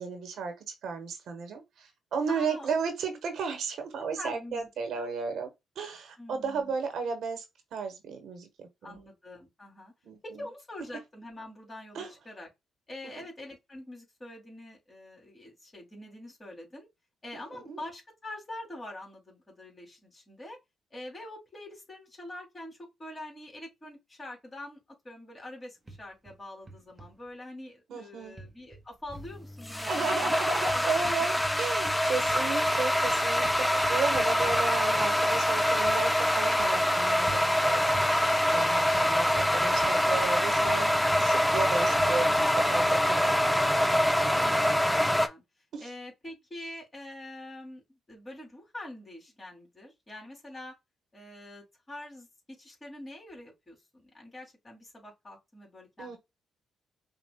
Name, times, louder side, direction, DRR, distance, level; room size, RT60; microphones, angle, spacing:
voice 1, 0.0-5.5 5.7-7.4 7.7-9.0 10.0-10.4 11.9-12.1 13.2-13.3 17.3-17.8 27.9-28.4 29.8-38.0 38.5-43.4 45.7-45.9 56.0-56.2, right 5 dB, 70° right, 1.1 m, -34 dB
voice 2, 2.3-2.7 4.2-4.7 5.0-5.1 6.2-6.7 8.8-9.9 10.2-12.5 12.9-16.9 17.2-20.6 20.9-30.3 30.7-31.2 33.4-33.6 44.4-44.9 45.2-45.4 45.8-50.7 51.1-53.8 54.0-56.2, left 1 dB, 25° left, 2.5 m, -45 dB
dh footsteps collection, 25.9-26.4 26.7-27.1 28.4-29.4 30.6-31.6 31.9-34.9 35.9-36.0 36.6-36.9 37.3-37.5 37.9-38.1 38.9-40.4 40.7-42.6, right 2 dB, 30° right, 0.8 m, -44 dB
sound 1, 29.1-45.3, equal, 5° left, 0.5 m, -25 dB
5.6 x 2.4 x 2.2 m
cardioid pair, 70°, 0 cm